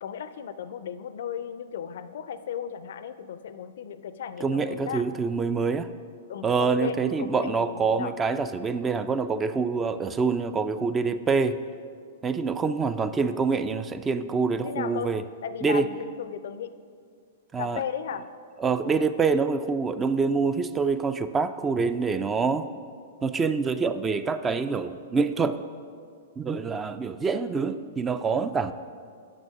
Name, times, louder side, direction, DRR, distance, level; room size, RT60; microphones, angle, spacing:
voice 1, 0.0-5.0 6.3-8.1 14.6-15.1 15.4-16.7 17.6-18.3, left 8 dB, 60° left, 13 dB, 0.4 m, -35 dB
voice 2, 4.4-5.9 6.4-11.6 12.2-15.2 15.6-15.9 17.5-17.8 18.6-22.7 23.2-25.6 26.4-28.7, right 4 dB, 15° right, 12 dB, 0.3 m, -26 dB
8.7 x 6.3 x 4.9 m, 2.1 s
figure-of-eight pair, 105°, 0 cm